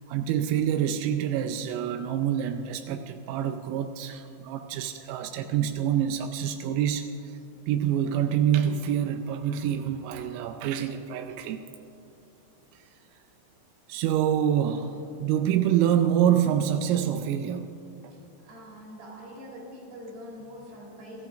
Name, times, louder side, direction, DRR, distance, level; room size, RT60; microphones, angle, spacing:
voice 1, 0.1-7.4 7.7-11.6 13.9-17.7, right 9 dB, 90° right, 6 dB, 3.2 m, -26 dB
voice 2, 18.4-21.3, equal, 55° right, -3 dB, 4.8 m, -44 dB
25.0 x 13.5 x 2.5 m, 2.9 s
omnidirectional pair, 5.8 m